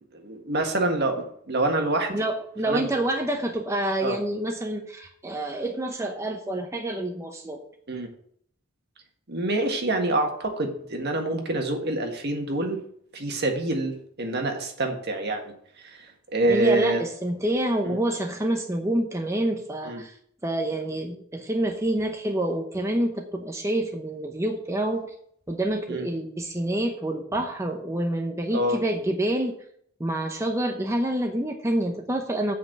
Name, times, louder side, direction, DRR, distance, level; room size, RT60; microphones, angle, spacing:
voice 1, 0.1-2.2 2.7-2.9 4.0-4.2 7.9-8.1 9.3-12.8 13.1-15.5 15.8-17.0 17.8-18.0 19.8-20.0 25.9-26.0 28.5-28.8, right 2 dB, 55° right, 4 dB, 1.7 m, -26 dB
voice 2, 2.1-7.6 16.5-20.2 20.4-25.1 25.5-29.6 30.0-32.5, right 1 dB, 15° right, 3 dB, 0.8 m, -27 dB
7.9 x 5.7 x 7.6 m, 0.65 s
head